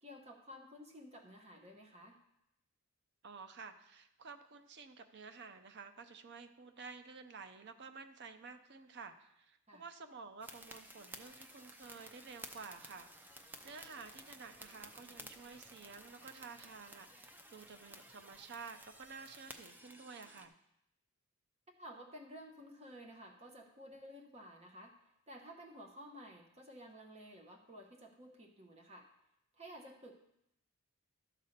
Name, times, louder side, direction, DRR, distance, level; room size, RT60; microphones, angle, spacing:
voice 1, 0.0-2.2 9.7-9.8 21.8-25.0 25.3-29.1 29.6-30.1, equal, 30° right, 2 dB, 1.0 m, -53 dB
voice 2, 3.2-20.5, right 5 dB, 50° right, 8 dB, 0.6 m, -52 dB
sound 1, 10.4-20.5, right 1 dB, 10° right, 0.5 m, -54 dB
12.0 x 4.2 x 6.6 m, 0.81 s
head